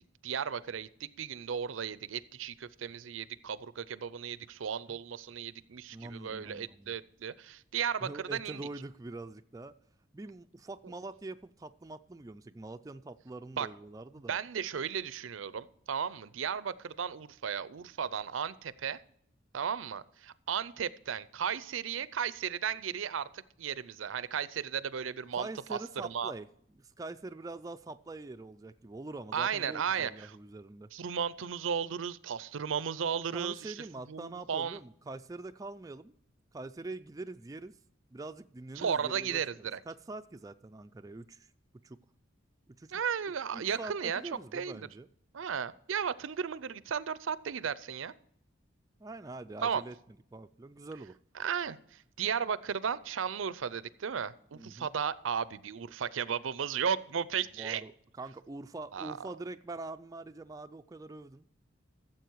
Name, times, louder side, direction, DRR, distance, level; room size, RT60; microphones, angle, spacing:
voice 1, 0.2-8.7 13.6-13.7 14.3-19.0 19.5-26.3 29.3-30.3 30.9-34.8 38.8-39.8 42.9-44.2 44.5-44.9 45.3-48.1 49.6-49.8 51.4-57.8 58.9-59.3, right 7 dB, 80° right, 18 dB, 0.5 m, -35 dB
voice 2, 5.9-6.9 8.0-9.8 10.1-14.4 25.3-26.5 26.8-30.9 33.3-36.1 36.5-37.8 38.1-41.5 41.8-42.0 42.8-43.0 43.5-45.1 49.0-49.9 50.3-51.2 54.5-54.9 57.6-57.9 58.2-61.4, right 2 dB, 20° right, 9 dB, 0.3 m, -44 dB
14.0 x 7.6 x 4.6 m, 0.69 s
head